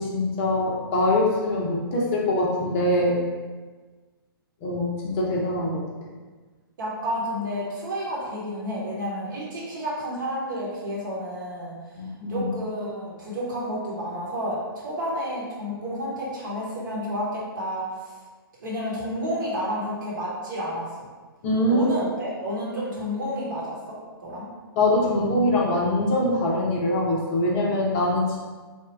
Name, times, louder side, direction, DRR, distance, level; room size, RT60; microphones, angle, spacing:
voice 1, 0.0-3.2 4.6-5.8 11.9-12.5 21.4-21.9 24.8-28.4, left 1 dB, 30° left, -2 dB, 0.5 m, -23 dB
voice 2, 6.8-11.8 12.3-18.1 18.6-21.1 21.7-24.5, equal, 55° right, -5 dB, 1.1 m, -30 dB
3.0 x 2.2 x 3.2 m, 1.4 s
figure-of-eight pair, 120°, 13 cm